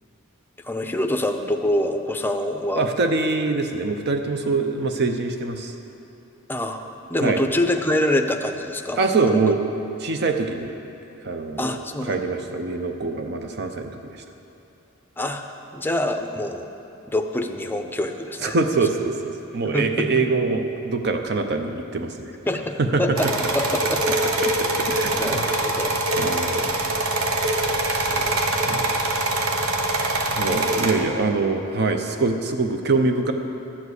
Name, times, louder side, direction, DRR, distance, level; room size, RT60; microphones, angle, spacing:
voice 1, 0.6-2.9 6.5-6.8 7.1-9.0 9.3-9.4 11.6-12.2 15.2-15.4 15.7-16.7 17.1-18.6 19.7-20.1 22.5-23.3 23.5-24.0 25.1-25.9 28.1-28.4, left 1 dB, 10° left, 5 dB, 0.6 m, -25 dB
voice 2, 2.7-5.7 7.2-7.4 9.0-9.6 10.0-10.7 11.2-11.8 12.0-14.2 18.4-19.2 19.5-22.3 22.8-23.0 24.4-25.4 26.2-26.6 27.8-28.1 28.7-29.0 30.4-33.3, right 3 dB, 50° right, 5 dB, 0.6 m, -24 dB
sound 1, 23.2-30.9, right 2 dB, 85° right, 1.1 m, -23 dB
11.5 x 7.3 x 8.1 m, 2.8 s
head